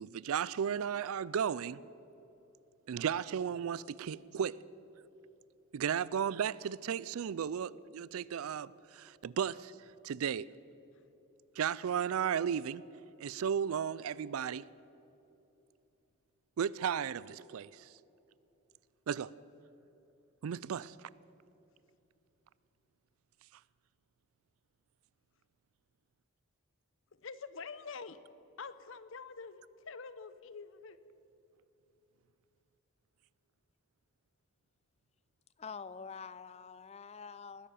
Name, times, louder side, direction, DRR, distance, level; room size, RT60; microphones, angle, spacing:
voice 1, 0.0-1.8 2.9-4.6 5.7-9.7 10.0-10.5 11.6-12.8 13.2-14.6 16.6-17.9 19.1-19.3 20.4-20.9, right 8 dB, 75° right, 0.4 m, -34 dB
voice 2, 27.2-28.2 28.6-31.0, left 5 dB, 60° left, 0.7 m, -46 dB
voice 3, 35.6-37.7, left 5 dB, 30° left, 0.4 m, -46 dB
20.0 x 10.5 x 6.8 m
head